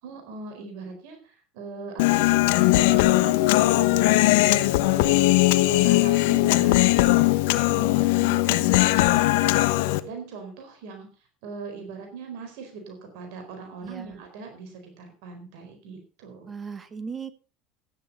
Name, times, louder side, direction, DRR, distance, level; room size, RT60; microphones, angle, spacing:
voice 1, 0.0-2.3 2.7-6.9 7.7-9.5 10.0-11.1 11.4-16.5, right 4 dB, 70° right, 5 dB, 4.4 m, -40 dB
Human voice, 2.0-10.0, left 18 dB, 75° left, 1.0 m, -19 dB
voice 2, 13.8-14.2 16.5-17.3, right 6 dB, 25° right, 11 dB, 1.6 m, -37 dB
13.5 x 10.0 x 5.3 m, 0.35 s
hypercardioid pair, 90°, 0 cm